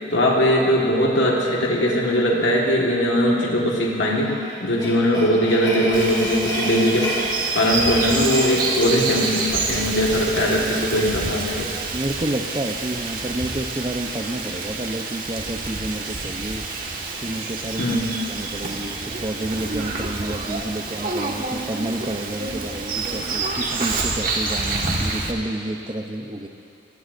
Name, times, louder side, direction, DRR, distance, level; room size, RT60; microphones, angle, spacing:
voice 1, 0.1-4.4 4.6-7.1 7.5-11.7 17.8-18.1, equal, 85° left, -2 dB, 1.7 m, -20 dB
sound 1, 4.2-9.7, equal, 20° left, 3.4 m, -30 dB
Bird vocalization bird call bird song, 5.9-25.3, right 3 dB, 50° right, 1.6 m, -28 dB
voice 2, 11.9-16.7 17.2-18.0 18.3-26.5, right 1 dB, 25° right, 5 dB, 0.7 m, -30 dB
27.5 x 15.5 x 2.6 m, 2.7 s
head